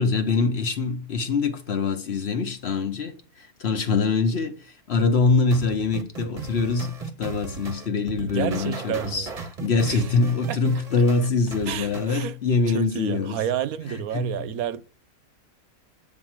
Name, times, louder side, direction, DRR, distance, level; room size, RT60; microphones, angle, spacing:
voice 1, 0.0-9.3 9.6-13.4 13.9-14.5, left 4 dB, 50° left, 1.0 m, -24 dB
sound 1, 5.5-12.1, right 5 dB, 30° right, 0.9 m, -37 dB
voice 2, 8.2-9.3 9.8-10.1 10.5-10.6 11.7-12.4 12.7-14.8, right 10 dB, 80° right, 1.1 m, -30 dB
8.7 x 3.8 x 6.0 m
omnidirectional pair, 1.5 m